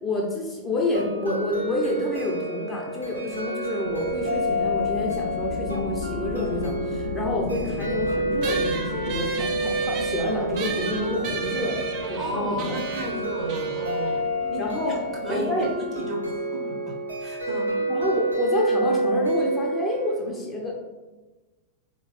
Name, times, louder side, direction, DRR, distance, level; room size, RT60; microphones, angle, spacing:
voice 1, 0.0-12.8 14.6-15.0 15.3-15.7 17.9-20.7, left 2 dB, 15° left, -2 dB, 0.7 m, -29 dB
sound 1, 0.9-20.1, right 1 dB, 80° right, 0.8 m, -29 dB
sound 2, 3.8-16.1, left 4 dB, 60° left, 0.3 m, -36 dB
sound 3, 8.4-15.2, right 5 dB, 40° right, 0.5 m, -35 dB
voice 2, 12.2-17.8, right 1 dB, 20° right, -2 dB, 0.9 m, -34 dB
4.0 x 2.9 x 3.1 m, 1.2 s
figure-of-eight pair, 90°, 0 cm